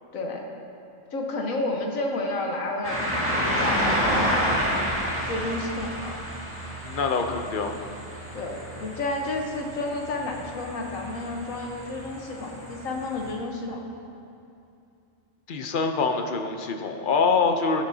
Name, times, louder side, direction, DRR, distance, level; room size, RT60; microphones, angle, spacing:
voice 1, 1.1-4.8 5.3-6.2 8.3-13.8, left 2 dB, 90° left, 1 dB, 1.5 m, -31 dB
sound 1, 2.8-13.3, equal, 10° right, 1.7 m, -30 dB
voice 2, 6.8-7.8 15.5-17.8, left 4 dB, 50° left, 5 dB, 0.7 m, -25 dB
16.5 x 6.7 x 2.7 m, 2.6 s
omnidirectional pair, 1.3 m